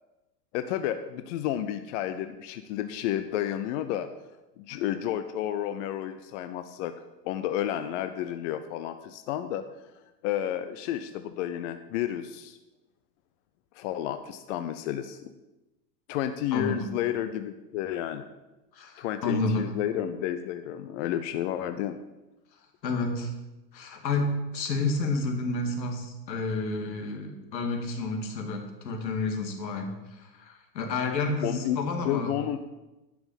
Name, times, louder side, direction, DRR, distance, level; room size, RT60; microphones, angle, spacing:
voice 1, 0.5-4.1 4.6-6.9 7.2-9.6 10.2-12.6 13.7-15.2 16.1-18.2 19.0-22.0 31.4-31.8 32.0-32.6, left 11 dB, 45° left, 9 dB, 0.7 m, -31 dB
voice 2, 16.5-16.9 18.7-19.7 22.8-23.3 23.7-32.3, left 3 dB, 85° left, 4 dB, 2.4 m, -30 dB
11.0 x 6.1 x 7.1 m, 1.0 s
hypercardioid pair, 125°, 50 cm